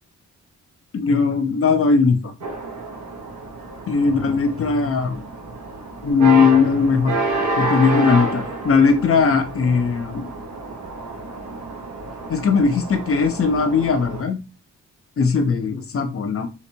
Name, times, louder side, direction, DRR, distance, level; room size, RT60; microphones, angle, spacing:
voice 1, 0.9-2.3 3.9-5.2 6.0-7.1 7.6-10.3 12.3-14.4 15.2-16.5, left 5 dB, 50° left, 6 dB, 0.9 m, -19 dB
sound 1, 2.4-14.2, right 2 dB, 70° right, 1.2 m, -29 dB
4.0 x 2.1 x 4.5 m, 0.29 s
cardioid pair, 80°, 29 cm